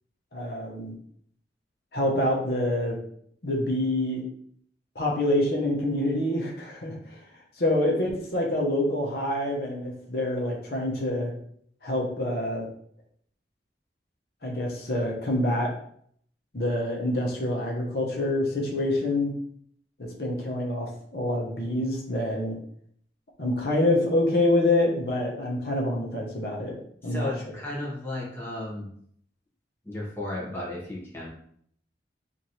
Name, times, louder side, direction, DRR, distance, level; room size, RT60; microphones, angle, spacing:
voice 1, 0.3-0.9 1.9-3.0 3.4-4.2 4.9-7.2 7.6-11.3 11.8-12.7 14.4-15.7 16.5-19.3 20.0-22.6 23.4-26.8 27.0-27.3, left 1 dB, 60° left, -2 dB, 0.8 m, -26 dB
voice 2, 27.0-28.9 29.8-31.3, left 1 dB, 15° left, -5 dB, 0.9 m, -34 dB
3.1 x 2.6 x 4.1 m, 0.64 s
head